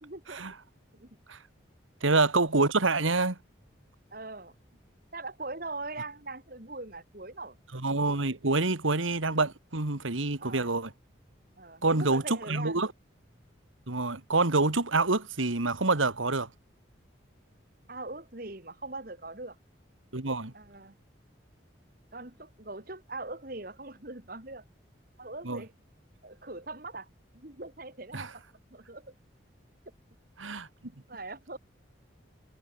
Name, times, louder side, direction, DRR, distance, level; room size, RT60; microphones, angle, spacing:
voice 1, 0.0-0.4 0.9-1.2 2.0-2.1 4.1-4.5 5.1-7.6 10.4-10.7 11.6-12.9 17.9-19.6 20.5-21.0 22.1-24.6 25.2-25.7 26.2-27.1 27.3-28.4 28.7-29.1 31.1-31.6, right 2 dB, 45° right, 2.7 m, -41 dB
voice 2, 2.0-3.4 7.7-10.9 11.8-12.9 13.9-16.5 20.1-20.5 25.4-25.6 28.1-28.3 30.4-30.7, right 3 dB, 85° right, 2.0 m, -27 dB
head